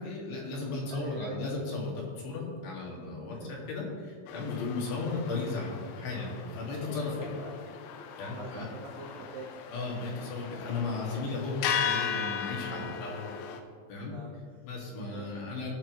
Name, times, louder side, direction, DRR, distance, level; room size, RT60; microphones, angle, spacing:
voice 1, 0.0-7.3 8.2-8.6 9.7-13.2 13.9-14.2 14.6-15.7, left 3 dB, 55° left, -3 dB, 3.6 m, -35 dB
voice 2, 0.9-1.4 3.3-3.5 4.3-4.5 5.0-5.2 6.8-7.6 8.3-9.5 12.6-12.9 14.1-14.6 15.1-15.5, right 4 dB, 90° right, 0 dB, 1.9 m, -44 dB
sound 1, 4.3-13.6, left 7 dB, 90° left, 3.2 m, -37 dB
18.0 x 7.2 x 3.1 m, 2.1 s
omnidirectional pair, 5.5 m